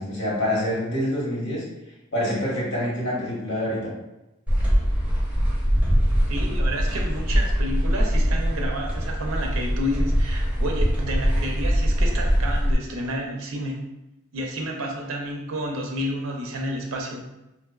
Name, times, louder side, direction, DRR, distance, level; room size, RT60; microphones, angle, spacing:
voice 1, 0.0-1.7 2.1-3.9, left 1 dB, 80° left, -6 dB, 1.0 m, -26 dB
sound 1, 4.5-12.7, equal, 5° right, 0.5 m, -22 dB
voice 2, 6.3-13.8 14.3-17.3, equal, 85° right, 1 dB, 0.4 m, -30 dB
2.7 x 2.0 x 2.3 m, 0.93 s
head